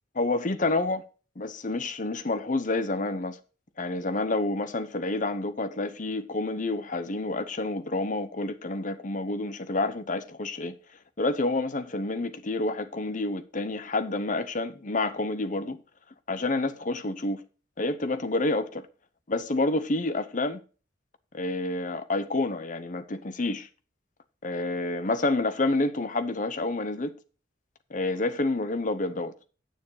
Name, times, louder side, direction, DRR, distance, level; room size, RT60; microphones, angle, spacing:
voice 1, 0.1-1.0 1.4-3.4 3.8-10.8 11.2-15.8 16.3-17.4 17.8-18.9 19.3-20.6 21.3-23.7 24.4-27.1 27.9-29.3, left 2 dB, 40° left, 0.8 m, -28 dB
9.1 x 7.2 x 4.8 m
head